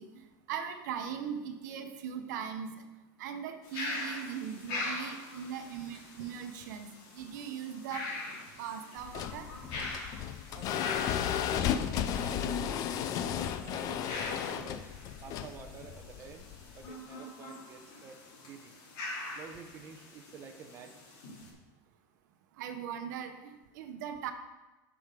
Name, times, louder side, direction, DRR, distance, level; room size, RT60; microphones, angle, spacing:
voice 1, 0.0-2.7 3.2-6.9 7.1-8.1 8.6-9.5 22.6-24.3, right 8 dB, 75° right, 7 dB, 1.0 m, -39 dB
sound 1, 3.6-21.5, left 2 dB, 55° left, 3.3 m, -43 dB
sound 2, 9.0-16.9, left 9 dB, 35° left, 0.5 m, -34 dB
voice 2, 10.5-14.8 15.2-18.2 18.4-18.7 19.3-21.0, right 6 dB, 30° right, 4 dB, 0.8 m, -50 dB
8.5 x 6.3 x 5.1 m, 1.1 s
supercardioid pair, 150°, 10 cm